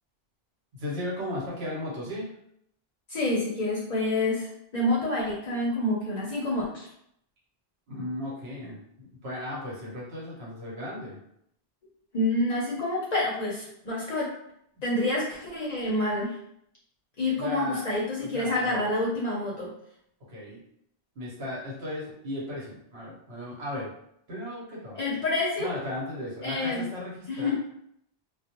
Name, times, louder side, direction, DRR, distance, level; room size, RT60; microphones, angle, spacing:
voice 1, 0.7-2.3 7.9-11.2 17.4-17.8 18.3-18.9 20.3-20.6 21.1-23.9 24.3-25.0 25.6-27.5, left 1 dB, 75° right, -5 dB, 1.1 m, -36 dB
voice 2, 3.1-6.9 12.1-14.3 14.8-16.4 17.2-19.7 25.0-25.7 26.4-26.8 27.3-27.5, left 2 dB, 50° left, -4 dB, 0.6 m, -28 dB
2.2 x 2.0 x 2.8 m, 0.73 s
omnidirectional pair, 1.1 m